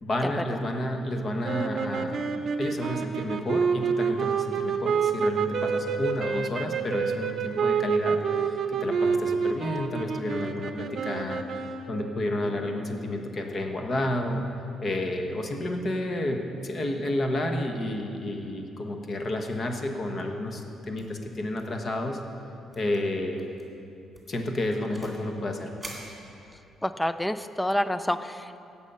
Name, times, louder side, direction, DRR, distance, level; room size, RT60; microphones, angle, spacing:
voice 1, 0.0-14.4 14.8-22.2 22.8-23.5 24.3-25.7, left 1 dB, 35° left, 3 dB, 1.2 m, -31 dB
sound 1, 1.4-12.2, right 6 dB, 50° right, 0.7 m, -28 dB
sound 2, 21.0-21.3 21.6-21.8 22.1-22.2 22.7-23.0 23.4-23.6 24.1-25.3 25.8-26.8, right 1 dB, 10° right, 2.4 m, -45 dB
voice 2, 26.8-28.6, left 1 dB, 5° left, 12 dB, 0.4 m, -28 dB
17.0 x 7.3 x 5.6 m, 2.7 s
cardioid pair, 135°, 0 cm